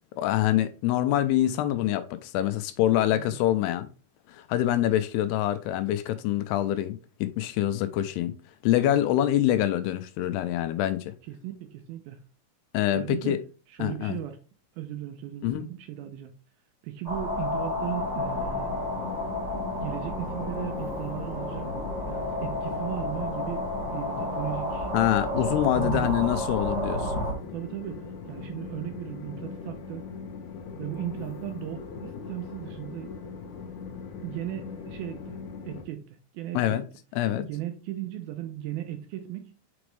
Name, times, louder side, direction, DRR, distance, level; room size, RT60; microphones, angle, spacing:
voice 1, 0.2-3.9 4.3-8.3 8.6-11.1 12.7-13.4 13.8-14.2 15.4-15.7 24.9-27.3 36.5-36.8 37.1-37.5, left 12 dB, 85° left, 2.5 m, -25 dB
voice 2, 11.3-12.2 13.0-13.4 13.7-14.4 14.8-16.3 16.8-18.7 19.8-23.7 23.9-24.9 25.7-26.2 27.5-30.0 30.8-33.2 34.2-35.4 35.6-36.1 36.3-36.8 37.3-39.6, right 13 dB, 80° right, 2.3 m, -36 dB
sound 1, 17.0-27.3, left 1 dB, 35° right, 0.6 m, -31 dB
Train, 18.0-35.8, left 5 dB, 65° left, 2.1 m, -40 dB
6.2 x 5.0 x 3.2 m
omnidirectional pair, 4.8 m